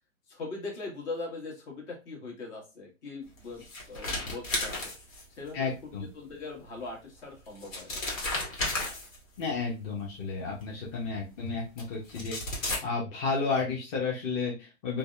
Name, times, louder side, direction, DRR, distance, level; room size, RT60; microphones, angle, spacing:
voice 1, 0.3-4.7 5.4-8.0, left 3 dB, 55° left, -1 dB, 1.3 m, -40 dB
sound 1, 3.4-5.5 6.9-7.0 7.5-9.4 10.6-10.7 11.8-11.9 12.1-12.8, left 2 dB, 80° left, 1.2 m, -33 dB
voice 2, 5.5-6.1 9.4-15.0, left 4 dB, 25° left, -3 dB, 0.5 m, -32 dB
2.6 x 2.1 x 2.3 m, 0.28 s
hypercardioid pair, 125°, 39 cm